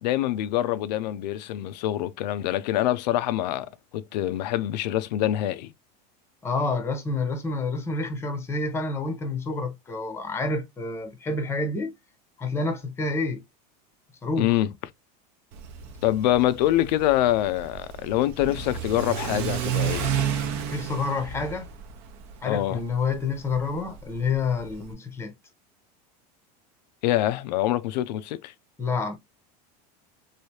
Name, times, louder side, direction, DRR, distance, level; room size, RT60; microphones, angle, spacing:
voice 1, 0.0-5.7 14.4-14.7 16.0-20.1 22.4-22.8 27.0-28.5, left 13 dB, 80° left, 0.5 m, -25 dB
voice 2, 6.4-11.9 12.4-13.4 14.2-14.5 20.7-21.7 22.4-25.3 28.8-29.2, left 3 dB, 10° left, 0.7 m, -28 dB
Car / Accelerating revving vroom, 15.5-24.9, right 8 dB, 55° right, 0.7 m, -32 dB
3.2 x 2.6 x 2.8 m
supercardioid pair, 140°, 21 cm